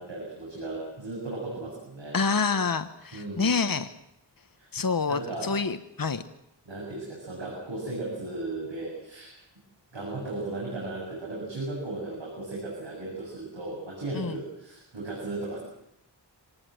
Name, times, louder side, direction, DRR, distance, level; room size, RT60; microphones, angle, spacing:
voice 1, 0.0-2.2 3.1-3.5 4.6-4.7 5.1-5.5 6.7-9.3 9.9-15.6, right 2 dB, 85° right, -3 dB, 7.8 m, -36 dB
voice 2, 2.1-3.9 4.7-6.2 14.1-14.4, left 5 dB, 50° left, 9 dB, 1.1 m, -27 dB
25.0 x 19.5 x 7.7 m, 0.79 s
wide cardioid pair, 55°, 43 cm